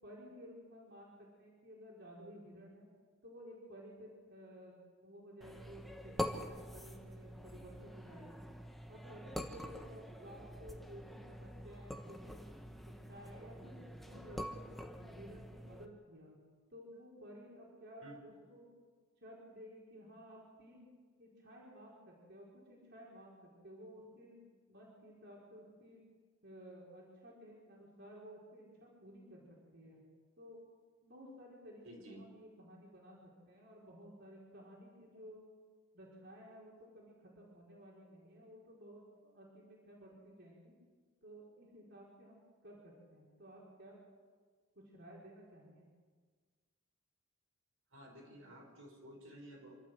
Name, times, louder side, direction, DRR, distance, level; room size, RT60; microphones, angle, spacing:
voice 1, 0.0-2.9 3.2-8.4 8.9-12.5 12.8-16.3 16.7-18.7 19.2-20.9 21.2-26.0 26.4-29.4 29.7-30.0 30.4-30.6 31.0-35.4 35.9-40.7 41.2-44.0 44.7-45.9, equal, 50° right, -4 dB, 5.0 m, -55 dB
sound 1, 5.4-15.9, equal, ahead, 1.2 m, -46 dB
voice 2, 31.8-32.2 36.8-36.9 47.9-49.7, equal, 70° right, 0 dB, 5.4 m, -53 dB
27.5 x 13.0 x 7.9 m, 1.5 s
head